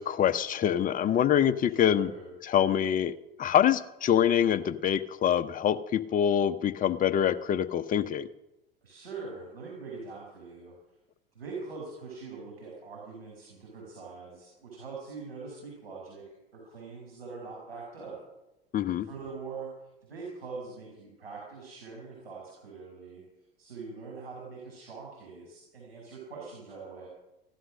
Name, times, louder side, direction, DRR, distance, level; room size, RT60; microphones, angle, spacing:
voice 1, 0.0-2.1 2.4-3.1 3.4-8.3 18.7-19.1, left 9 dB, 25° left, 11 dB, 0.9 m, -25 dB
voice 2, 1.7-2.3 8.8-10.7 11.3-16.2 16.5-18.2 19.0-19.7 20.1-23.2 23.6-27.1, right 4 dB, 85° right, -4 dB, 5.5 m, -43 dB
16.0 x 11.5 x 6.4 m, 0.95 s
figure-of-eight pair, 85°, 30 cm